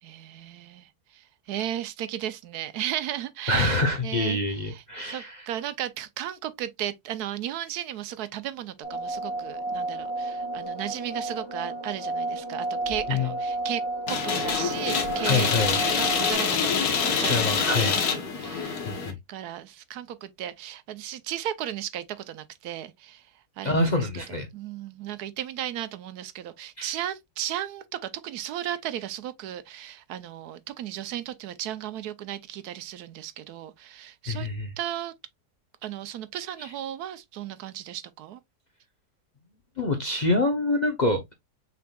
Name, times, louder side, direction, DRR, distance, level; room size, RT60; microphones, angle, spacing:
voice 1, 0.0-4.4 4.6-13.8 14.1-18.8 19.3-23.2 23.6-34.5 34.8-35.1 35.8-38.4, right 11 dB, 80° right, 1.1 m, -35 dB
voice 2, 3.5-5.5 13.1-13.3 15.2-15.8 17.3-18.0 18.9-19.2 23.6-24.5 26.8-26.9 34.3-34.7 36.6-36.7 39.8-41.3, left 2 dB, 45° left, 0.6 m, -26 dB
sound 1, 8.8-16.3, right 2 dB, 15° left, 2.5 m, -32 dB
sound 2, 14.1-19.1, left 6 dB, 75° left, 1.6 m, -26 dB
6.0 x 3.6 x 2.3 m
omnidirectional pair, 1.7 m